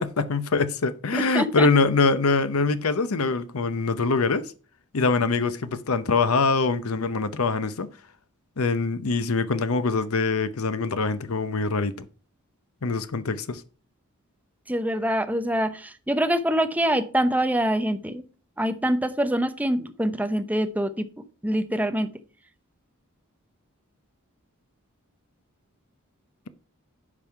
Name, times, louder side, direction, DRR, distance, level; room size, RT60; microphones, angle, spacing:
voice 1, 0.0-4.5 4.9-7.9 8.6-12.1 12.8-13.6, left 4 dB, 70° left, 0.8 m, -24 dB
voice 2, 1.1-1.7 14.7-18.2 18.6-21.0 21.4-22.1, equal, 5° right, 0.7 m, -25 dB
9.9 x 5.5 x 4.6 m
head